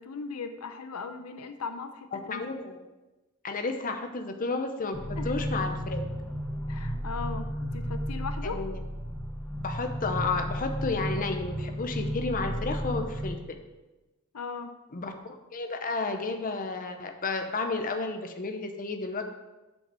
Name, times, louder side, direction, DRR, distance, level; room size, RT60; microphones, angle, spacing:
voice 1, 0.0-2.5 5.2-5.3 6.7-8.6 14.3-14.7, left 4 dB, 85° left, 8 dB, 0.7 m, -38 dB
voice 2, 2.1-2.8 3.4-6.1 8.4-8.8 9.6-13.6 14.9-19.2, left 3 dB, 40° left, 6 dB, 0.7 m, -32 dB
sound 1, 4.9-13.3, equal, 5° left, 0.9 m, -33 dB
7.6 x 5.4 x 6.2 m, 1.1 s
head